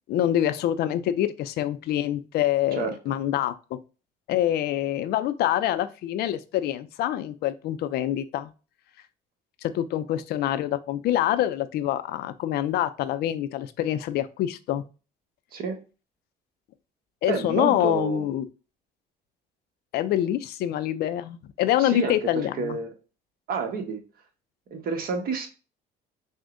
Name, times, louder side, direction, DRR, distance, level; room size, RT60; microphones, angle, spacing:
voice 1, 0.1-3.8 4.3-8.5 9.6-14.8 17.2-18.5 19.9-22.8, left 12 dB, 70° left, 13 dB, 0.4 m, -26 dB
voice 2, 17.2-18.2 21.8-22.9 23.5-24.0 24.7-25.5, right 4 dB, 60° right, 4 dB, 1.0 m, -29 dB
6.1 x 2.1 x 2.5 m, 0.33 s
cardioid pair, 110°, 17 cm